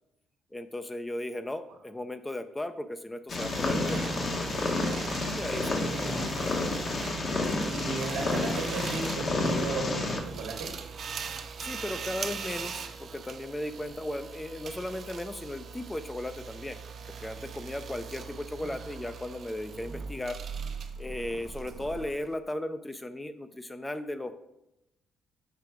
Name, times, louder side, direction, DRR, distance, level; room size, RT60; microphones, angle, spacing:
voice 1, 0.5-4.0 5.3-6.2 11.6-16.8 17.1-20.4 21.0-24.4, left 1 dB, 15° left, 10 dB, 0.5 m, -36 dB
Purr, 3.3-10.2, left 2 dB, 45° left, 1.1 m, -30 dB
sound 1, 3.3-22.3, right 6 dB, 55° right, 0.6 m, -41 dB
voice 2, 5.8-6.2 7.6-10.7 18.6-18.7, right 3 dB, 90° right, 0 dB, 1.4 m, -36 dB
6.7 x 3.4 x 4.8 m, 0.88 s
cardioid pair, 90°, 0 cm